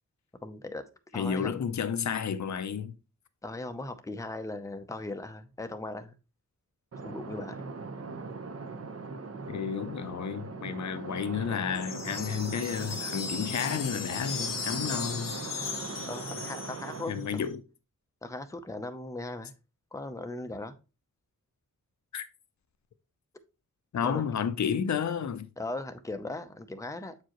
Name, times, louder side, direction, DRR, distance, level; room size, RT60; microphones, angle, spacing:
voice 1, 0.4-0.8 1.1-1.5 3.4-6.1 7.0-7.7 14.8-15.0 16.1-17.4 18.2-19.5 19.9-20.7 24.0-24.2 25.6-27.1, left 2 dB, 10° left, 0.6 m, -38 dB
voice 2, 1.1-2.9 9.5-15.4 17.1-17.6 22.1-22.3 23.9-25.5, left 7 dB, 60° left, 0.6 m, -31 dB
sound 1, 6.9-17.5, right 4 dB, 50° right, 0.9 m, -40 dB
sound 2, 11.7-17.2, left 5 dB, 80° left, 0.9 m, -37 dB
7.4 x 4.8 x 3.0 m
wide cardioid pair, 120°, 32 cm